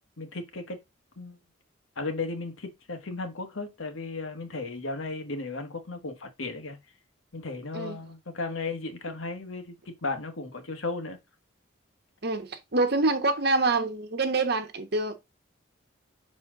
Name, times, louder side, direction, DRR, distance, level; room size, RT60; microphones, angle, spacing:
voice 1, 0.2-0.8 1.2-1.4 2.0-6.8 7.3-11.2, left 3 dB, 80° left, 1.3 m, -35 dB
voice 2, 12.2-15.2, right 3 dB, 50° right, 1.0 m, -26 dB
6.0 x 4.3 x 3.7 m
head